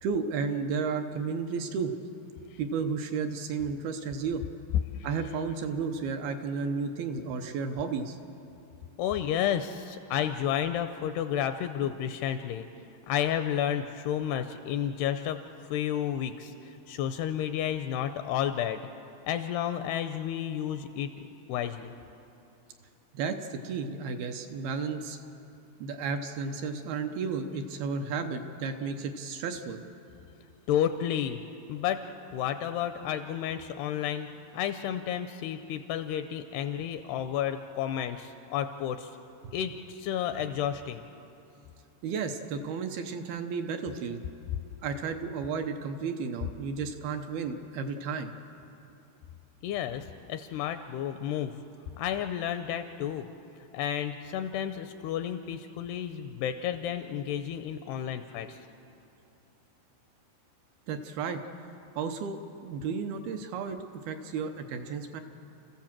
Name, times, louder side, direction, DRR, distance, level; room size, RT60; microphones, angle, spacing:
voice 1, 0.0-1.9 2.6-4.4 5.0-8.2 23.1-25.2 25.8-29.8 42.0-44.2 44.8-48.3 60.9-61.4 62.0-65.2, right 5 dB, 75° right, 6 dB, 2.4 m, -33 dB
voice 2, 9.0-12.7 13.1-15.4 15.7-18.8 19.3-21.9 30.7-31.4 31.7-32.0 32.3-39.2 39.5-41.0 49.6-51.6 52.0-53.3 53.7-58.6, left 10 dB, 80° left, 9 dB, 2.5 m, -31 dB
30.0 x 15.0 x 7.4 m, 2.7 s
omnidirectional pair, 5.1 m